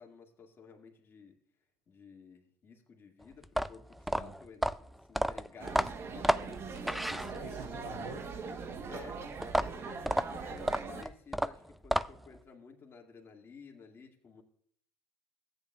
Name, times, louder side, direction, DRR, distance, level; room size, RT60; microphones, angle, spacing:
voice 1, 0.0-1.3 1.9-4.7 5.1-6.6 7.1-8.0 8.9-9.2 9.6-14.4, left 5 dB, 40° left, 1 dB, 2.0 m, -53 dB
sound 1, 3.4-7.7 9.4-12.4, equal, ahead, 0.3 m, -31 dB
sound 2, 5.6-11.0, right 5 dB, 40° right, 1.0 m, -41 dB
voice 2, 6.4-8.4 8.6-8.9, right 2 dB, 90° right, -3 dB, 3.3 m, -48 dB
14.5 x 9.1 x 2.4 m, 0.62 s
supercardioid pair, 85°, 6 cm